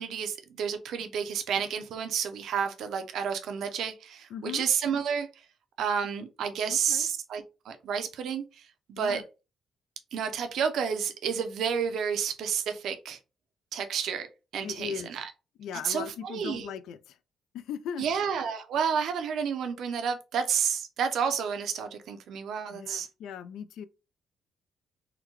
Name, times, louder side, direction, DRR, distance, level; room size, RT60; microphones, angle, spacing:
voice 1, 0.0-5.3 5.8-8.4 8.9-9.2 10.1-13.2 13.7-14.3 14.5-15.2 15.8-16.7 18.0-23.1, right 7 dB, 75° right, 0.6 m, -30 dB
voice 2, 4.3-4.7 6.7-7.1 9.0-9.2 14.6-15.1 15.6-17.2 17.5-18.1 22.7-23.8, left 8 dB, 85° left, 0.3 m, -38 dB
3.8 x 2.2 x 3.0 m
cardioid pair, 120°, 0 cm